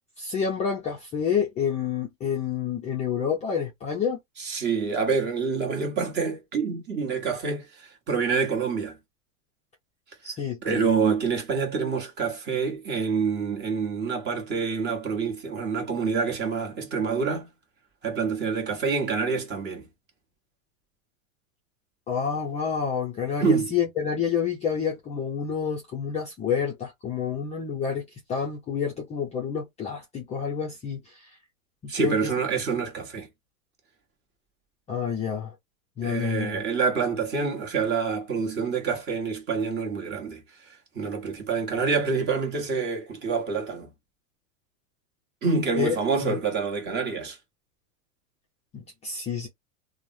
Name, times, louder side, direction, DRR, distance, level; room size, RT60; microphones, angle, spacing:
voice 1, 0.2-4.2 10.2-10.9 22.1-31.4 31.8-32.3 34.9-35.5 36.0-36.6 45.8-46.0 46.2-46.4 48.7-49.5, left 7 dB, 15° left, 0.4 m, -28 dB
voice 2, 4.4-9.0 10.6-17.5 18.0-19.9 23.4-23.7 31.9-33.3 36.0-43.9 45.4-47.4, right 5 dB, 25° right, 1.1 m, -27 dB
3.2 x 2.1 x 2.6 m
supercardioid pair, 135°, 41 cm